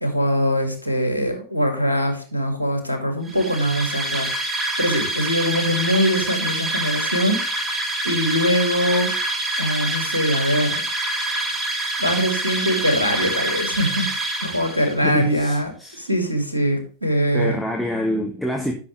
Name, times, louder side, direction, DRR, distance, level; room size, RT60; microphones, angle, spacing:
voice 1, 0.0-7.6 8.0-9.1 9.6-10.8 11.3-11.5 12.0-17.6, equal, 85° right, 2.2 m, -22 dB
sound 1, 3.2-15.1, right 1 dB, 15° right, 1.9 m, -26 dB
voice 2, 15.0-16.0 17.3-18.7, left 1 dB, ahead, 1.3 m, -26 dB
12.0 x 6.1 x 3.1 m
figure-of-eight pair, 90°, 0 cm